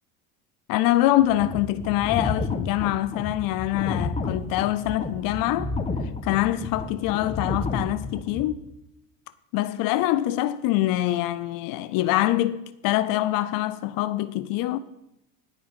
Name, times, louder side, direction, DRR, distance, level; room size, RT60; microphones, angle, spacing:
voice 1, 0.7-5.7 6.2-8.7 9.5-14.8, left 15 dB, 65° left, 0.7 m, -24 dB
sound 1, 1.2-8.4, left 3 dB, 15° left, 1.2 m, -31 dB
16.5 x 5.5 x 5.7 m
supercardioid pair, 100°, 36 cm